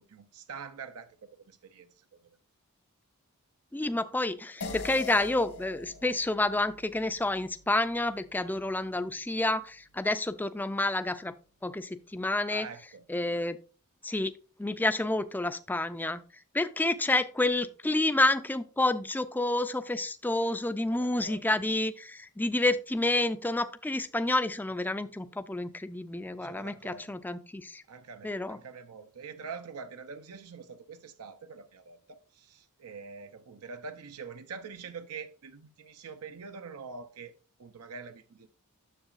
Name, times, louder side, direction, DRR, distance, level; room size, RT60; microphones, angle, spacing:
voice 1, 0.0-2.0 12.5-13.1 20.8-21.4 26.4-27.1 27.9-38.5, right 5 dB, 85° right, 0.6 m, -45 dB
voice 2, 3.7-11.3 11.6-12.7 13.1-13.6 14.0-14.3 14.6-16.2 16.5-27.8 28.2-28.6, left 2 dB, 10° left, 0.4 m, -29 dB
sound 1, 4.6-9.3, left 4 dB, 75° left, 1.5 m, -44 dB
9.9 x 7.2 x 2.5 m
head